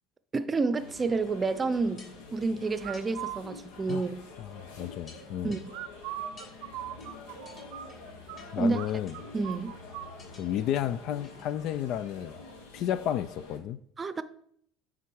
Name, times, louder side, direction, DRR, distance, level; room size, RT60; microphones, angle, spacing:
voice 1, 0.3-4.1 5.4-5.6 8.6-8.8 9.3-9.7 14.0-14.2, right 3 dB, 25° right, 0.6 m, -29 dB
sound 1, 0.8-13.6, left 3 dB, 90° left, 1.1 m, -47 dB
sound 2, 1.2-1.3 2.0-2.5 2.9-3.1 3.9-4.1 4.5-4.6 5.1-5.7 6.4-6.5 7.0-7.1 7.5-8.0 8.4-8.6 9.1-9.5 10.2-10.5 10.8-10.9 11.2-11.5 11.9-12.0, left 3 dB, 40° left, 3.0 m, -54 dB
sound 3, 2.8-3.4 5.7-8.4 8.7-8.9 9.1-10.1, right 13 dB, 75° right, 0.5 m, -39 dB
voice 2, 4.4-5.6 8.5-9.1 10.4-12.4 12.7-13.8, left 11 dB, 65° left, 0.3 m, -32 dB
9.3 x 3.7 x 4.6 m
supercardioid pair, 85°, 0 cm